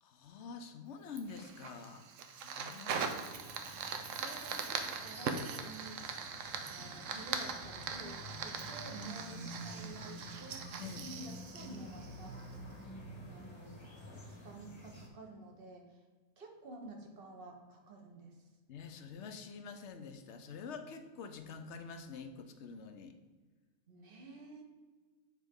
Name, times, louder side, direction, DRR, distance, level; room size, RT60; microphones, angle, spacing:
voice 1, 0.0-2.1 2.4-2.9 10.8-11.2 18.7-23.2, left 5 dB, 65° left, 7 dB, 0.9 m, -47 dB
Fire, 1.2-12.5, right 6 dB, 70° right, 1.0 m, -41 dB
sound 1, 3.1-15.1, equal, 25° left, 1.0 m, -50 dB
voice 2, 4.1-6.0 6.7-12.6 13.1-14.1 14.4-16.0 16.4-18.4 23.9-24.6, right 2 dB, 45° right, 2 dB, 1.1 m, -51 dB
7.5 x 4.5 x 3.5 m, 1.3 s
omnidirectional pair, 1.4 m